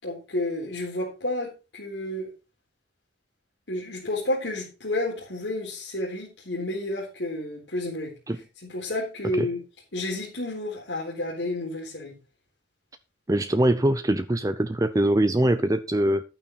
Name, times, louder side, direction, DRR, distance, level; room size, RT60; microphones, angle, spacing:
voice 1, 0.0-2.3 3.7-8.1 8.6-9.6 9.9-12.1, left 1 dB, 85° left, 4.0 m, -31 dB
voice 2, 13.3-16.2, right 1 dB, 20° right, 0.6 m, -22 dB
12.0 x 9.0 x 4.2 m
head